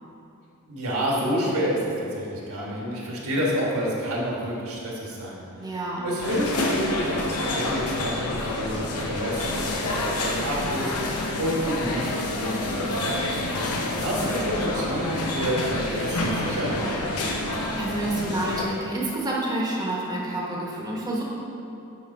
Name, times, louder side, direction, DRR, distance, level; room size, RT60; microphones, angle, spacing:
voice 1, 0.7-5.7 6.0-12.1 12.4-13.4 14.0-17.2, equal, 70° right, -4 dB, 1.6 m, -29 dB
voice 2, 5.6-6.1 17.7-21.2, right 1 dB, 20° right, -4 dB, 1.0 m, -28 dB
sound 1, 6.2-18.6, left 2 dB, 80° left, 0.8 m, -28 dB
8.7 x 3.4 x 5.4 m, 2.8 s
head